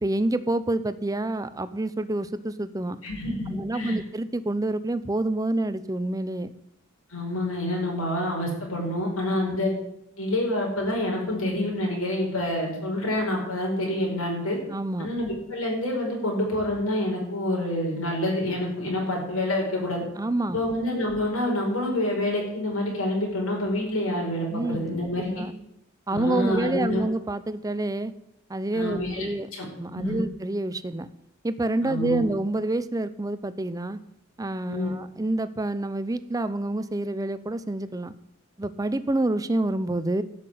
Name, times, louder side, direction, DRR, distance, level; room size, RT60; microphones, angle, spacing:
voice 1, 0.0-3.0 3.5-6.5 9.5-9.6 14.7-15.1 20.2-20.6 24.5-25.5 26.1-28.1 28.5-29.5 29.8-31.1 31.4-34.0 34.4-38.1 38.6-40.2, right 2 dB, 15° right, 14 dB, 0.5 m, -28 dB
voice 2, 3.0-3.9 7.1-9.7 10.2-14.6 15.0-20.0 20.5-25.4 26.1-27.0 28.7-29.2 29.5-29.7 29.9-30.2 31.8-32.3 34.7-34.9, left 1 dB, 75° left, -2 dB, 5.1 m, -27 dB
12.0 x 5.9 x 9.2 m, 0.81 s
head